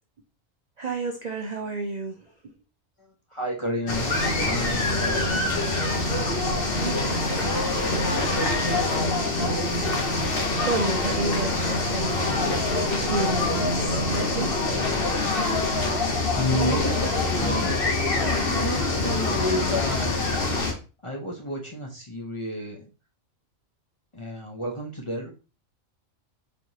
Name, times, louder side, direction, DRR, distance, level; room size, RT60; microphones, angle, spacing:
voice 1, 0.8-2.2 6.8-8.2 8.5-9.9 10.6-12.7 13.1-14.7 15.5-15.6, right 3 dB, 55° right, 3 dB, 0.5 m, -32 dB
voice 2, 3.0-4.1 4.4-5.6 11.6-11.7 16.4-17.8 18.1-20.2 21.0-22.9 24.1-25.3, equal, 30° left, -1 dB, 0.7 m, -31 dB
sound 1, 3.9-20.7, left 2 dB, 50° left, 1.1 m, -25 dB
4.5 x 3.3 x 2.7 m, 0.32 s
omnidirectional pair, 1.3 m